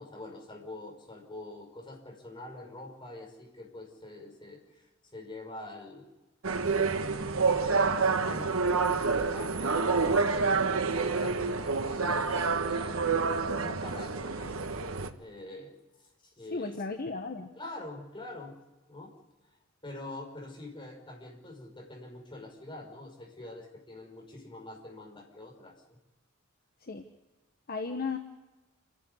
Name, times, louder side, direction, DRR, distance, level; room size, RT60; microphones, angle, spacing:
voice 1, 0.0-6.0 6.9-16.8 17.6-18.6 18.9-19.1 19.8-26.0, left 2 dB, 25° left, 0 dB, 5.4 m, -45 dB
sound 1, 6.4-15.1, right 4 dB, 75° right, 1.4 m, -28 dB
voice 2, 16.5-17.5 26.8-27.1 27.7-28.2, left 4 dB, 45° left, 5 dB, 1.2 m, -35 dB
29.0 x 11.0 x 9.5 m, 1.1 s
head